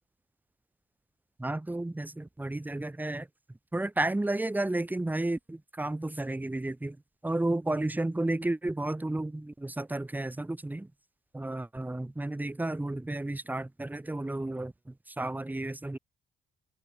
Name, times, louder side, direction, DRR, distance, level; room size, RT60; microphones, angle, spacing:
voice 1, 1.4-3.3 3.7-7.0 7.2-10.9 11.3-14.7 15.2-16.0, right 2 dB, 10° right, 1.0 m, -32 dB
cardioid pair, 90°, 20 cm